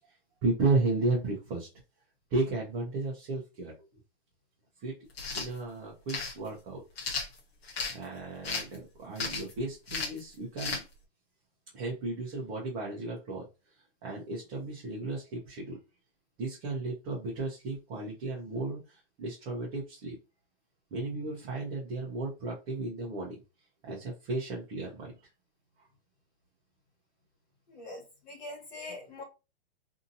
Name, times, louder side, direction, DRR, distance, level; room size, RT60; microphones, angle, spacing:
voice 1, 0.4-1.7 2.3-3.7 4.8-4.9 5.3-6.8 7.9-10.8 11.7-13.5 14.0-15.8 16.4-20.2 20.9-23.4 23.8-25.1, right 3 dB, 20° right, -4 dB, 0.6 m, -33 dB
sound 1, 5.1-5.5 6.1-6.3 7.0-8.0 8.4-8.8 9.2-9.5 9.9-10.2 10.6-10.8, left 4 dB, 75° left, 1.0 m, -34 dB
voice 2, 27.7-29.2, left 2 dB, 40° left, 0 dB, 1.4 m, -43 dB
2.7 x 2.6 x 2.6 m, 0.28 s
hypercardioid pair, 160°, 31 cm